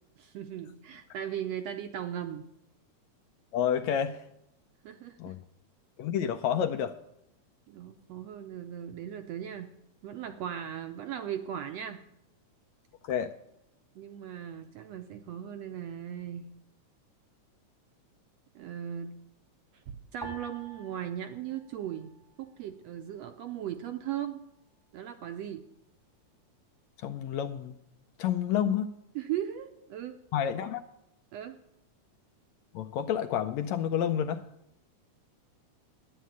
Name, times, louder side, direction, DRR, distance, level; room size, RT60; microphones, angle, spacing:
voice 1, 0.2-2.5 4.8-5.3 6.2-6.3 7.7-9.7 10.0-12.0 13.9-16.5 18.5-19.1 19.9-24.4 24.9-25.6 29.1-30.2 31.3-31.6, right 10 dB, 75° right, 7 dB, 1.6 m, -38 dB
voice 2, 3.5-4.2 5.2-5.4 6.0-6.9 13.0-13.3 27.0-27.7 28.2-28.9 30.3-30.8 32.7-34.5, left 9 dB, 75° left, 8 dB, 1.7 m, -29 dB
sound 1, 20.2-22.7 23.0-23.9 24.5-24.9, right 3 dB, 15° left, 0.9 m, -49 dB
10.0 x 9.5 x 9.2 m, 0.81 s
omnidirectional pair, 3.6 m